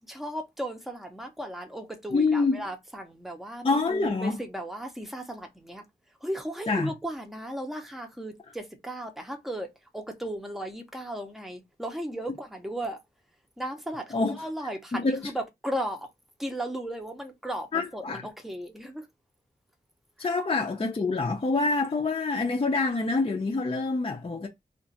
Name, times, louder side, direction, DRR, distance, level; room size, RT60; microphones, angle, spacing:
voice 1, 0.1-5.8 6.2-9.7 9.9-13.0 13.6-16.1 16.4-19.1, right 1 dB, ahead, 0.8 m, -36 dB
voice 2, 2.1-2.6 3.6-4.4 6.7-6.9 14.1-14.5 14.9-15.3 17.7-18.3 20.2-24.5, left 3 dB, 35° left, 0.6 m, -26 dB
2.5 x 2.4 x 4.0 m
wide cardioid pair, 90°, 16 cm